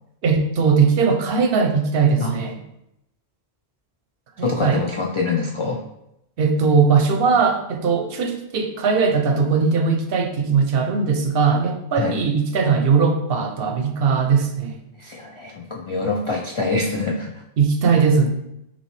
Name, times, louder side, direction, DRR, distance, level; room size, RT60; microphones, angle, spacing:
voice 1, 0.2-2.6 4.4-4.8 6.4-14.8 17.6-18.3, right 5 dB, 65° right, 5 dB, 0.8 m, -19 dB
voice 2, 4.4-5.8 12.0-12.1 15.0-17.4 17.8-18.0, left 3 dB, 50° left, -1 dB, 0.3 m, -25 dB
5.2 x 2.9 x 3.2 m, 0.83 s
omnidirectional pair, 1.1 m